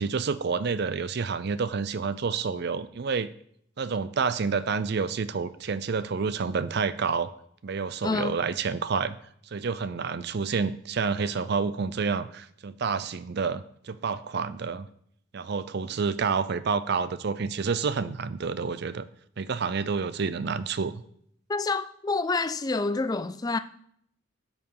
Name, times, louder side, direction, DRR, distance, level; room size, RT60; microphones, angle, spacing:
voice 1, 0.0-3.3 3.8-7.3 7.6-9.2 9.5-14.9 15.3-19.0 19.4-21.0, right 5 dB, 50° right, 0.4 m, -29 dB
voice 2, 8.0-8.4 21.5-23.6, left 3 dB, 20° left, 0.4 m, -28 dB
13.0 x 4.7 x 5.5 m
head